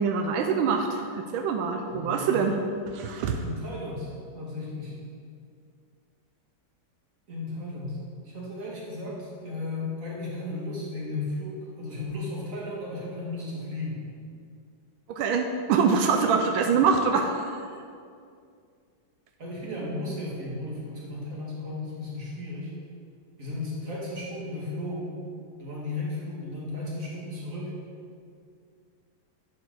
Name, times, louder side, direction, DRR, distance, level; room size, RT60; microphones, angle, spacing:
voice 1, 0.0-2.6 2.9-3.4 15.2-17.6, right 5 dB, 90° right, 4 dB, 1.4 m, -24 dB
voice 2, 1.9-2.3 3.4-4.9 7.3-14.0 19.4-22.7 23.4-25.2 25.6-27.7, left 2 dB, 40° right, -5 dB, 2.4 m, -35 dB
11.0 x 7.2 x 3.9 m, 2.3 s
omnidirectional pair, 2.2 m